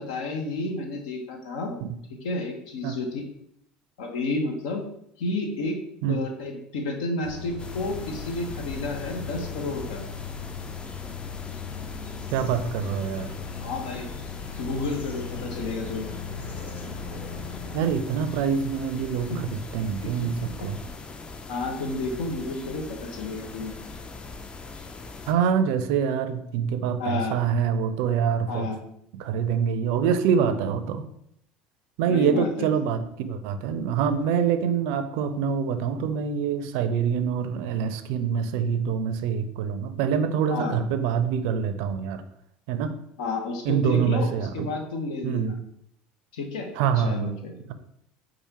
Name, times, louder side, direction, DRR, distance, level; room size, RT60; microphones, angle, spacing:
voice 1, 0.0-1.7 2.2-3.2 4.0-4.8 5.2-5.8 6.1-10.0 13.6-14.1 14.6-16.1 19.3-19.6 20.2-20.7 21.5-23.7 27.0-27.4 28.5-28.8 32.0-32.7 40.5-40.8 43.2-45.6 46.3-46.7 47.0-47.5, left 2 dB, 75° left, 3 dB, 0.8 m, -31 dB
sound 1, 7.2-17.9, left 6 dB, 45° left, 0.8 m, -38 dB
sound 2, 7.6-25.3, left 3 dB, 25° left, 0.4 m, -41 dB
voice 2, 12.3-13.3 17.7-19.3 19.7-20.4 20.6-20.8 25.3-28.7 29.2-31.1 32.0-42.2 42.7-42.9 43.6-44.7 45.2-45.5 46.8-47.3, right 7 dB, 70° right, 10 dB, 0.4 m, -25 dB
4.8 x 2.5 x 2.9 m, 0.73 s
hypercardioid pair, 80°, 4 cm